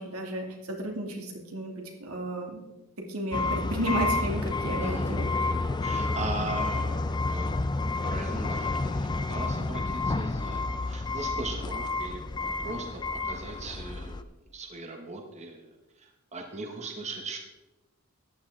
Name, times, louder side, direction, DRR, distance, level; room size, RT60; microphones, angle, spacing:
voice 1, 0.0-2.6 3.1-5.3, right 1 dB, 85° right, 1 dB, 2.5 m, -33 dB
sound 1, 3.3-14.2, left 3 dB, 20° left, 0.4 m, -30 dB
voice 2, 4.8-5.1 5.8-7.5 7.8-12.2 12.6-14.2 14.5-15.7 16.0-17.4, right 2 dB, 30° right, 3 dB, 1.1 m, -39 dB
14.0 x 9.9 x 3.7 m, 1.0 s
head